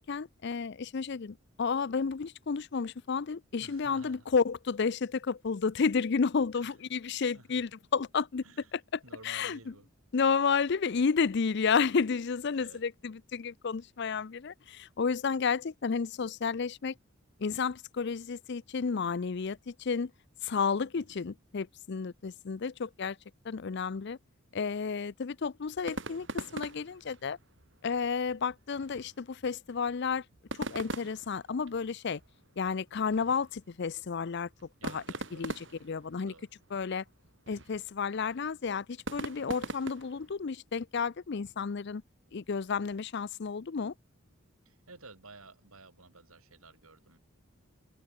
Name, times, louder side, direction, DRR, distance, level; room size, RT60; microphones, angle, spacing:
voice 1, 0.0-8.4 8.7-9.6 10.1-16.9 17.4-20.1 20.4-23.2 23.4-24.2 24.5-27.4 27.8-30.2 30.6-32.2 32.6-34.5 34.8-35.0 35.4-35.5 35.8-36.3 36.7-37.0 37.5-42.0 42.3-43.9, left 5 dB, 55° left, 0.5 m, -31 dB
voice 2, 3.6-4.3 6.5-6.7 7.2-7.6 8.4-9.9 12.5-12.8 20.9-21.2 34.8-35.6 36.2-36.5 44.7-47.2, right 3 dB, 85° right, 7.3 m, -54 dB
sound 1, 25.7-40.3, right 2 dB, 60° right, 4.9 m, -43 dB
open air
head